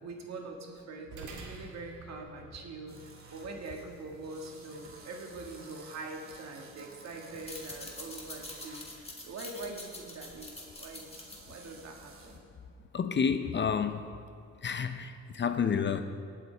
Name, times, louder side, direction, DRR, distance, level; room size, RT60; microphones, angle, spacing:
voice 1, 0.0-10.5 10.8-11.0 11.5-12.4, right 3 dB, 60° right, 1 dB, 1.8 m, -43 dB
sound 1, 1.1-9.8, right 4 dB, 80° right, 1.8 m, -53 dB
sound 2, 2.9-12.4, right 3 dB, 45° right, 2.2 m, -54 dB
sound 3, 7.3-12.5, left 2 dB, 20° left, 2.1 m, -46 dB
voice 2, 12.9-14.0 14.6-16.0, left 6 dB, 40° left, 9 dB, 0.6 m, -29 dB
18.5 x 8.5 x 3.4 m, 2.3 s
cardioid pair, 90°, 30 cm